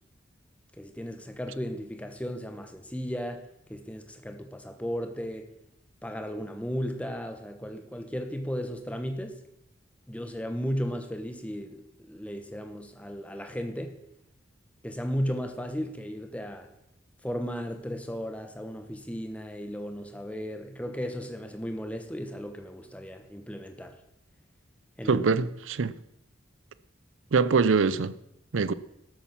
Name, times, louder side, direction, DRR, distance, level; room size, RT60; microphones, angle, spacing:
voice 1, 0.8-3.4 3.7-5.5 6.0-9.4 10.1-14.0 14.8-16.7 17.2-23.9 25.0-25.3, equal, 5° left, 1.1 m, -35 dB
voice 2, 25.1-26.0 27.3-28.1 28.5-28.7, right 5 dB, 85° right, 0.5 m, -23 dB
12.5 x 8.6 x 6.0 m
head